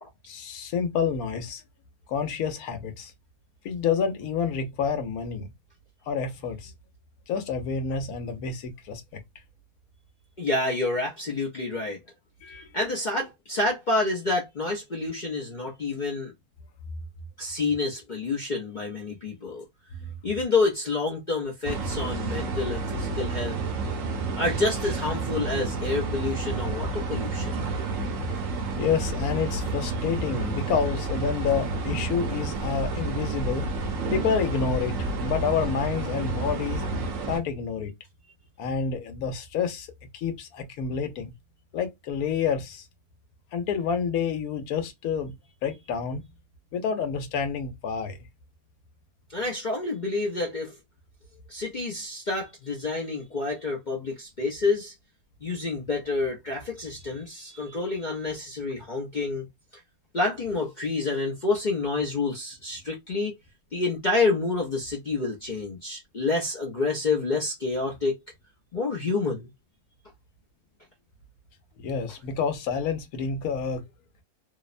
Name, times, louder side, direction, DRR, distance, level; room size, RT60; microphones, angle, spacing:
voice 1, 0.3-1.6 2.1-3.1 3.6-5.5 6.1-6.7 7.3-9.2 12.4-12.7 20.0-20.1 28.3-28.4 28.8-33.6 34.1-36.8 37.3-37.9 38.6-39.9 40.1-41.3 41.7-42.8 43.5-45.4 45.6-46.2 46.7-48.3 71.8-73.8, left 6 dB, 85° left, 1.2 m, -28 dB
voice 2, 10.4-12.0 12.7-16.3 17.4-19.6 20.2-23.6 24.4-27.6 49.3-50.7 51.5-54.9 55.4-59.5 60.1-63.4 63.7-68.2 68.7-69.5, left 3 dB, 55° left, 0.5 m, -28 dB
sound 1, 21.6-37.4, right 3 dB, 70° right, 1.0 m, -30 dB
2.8 x 2.1 x 2.4 m
omnidirectional pair, 1.5 m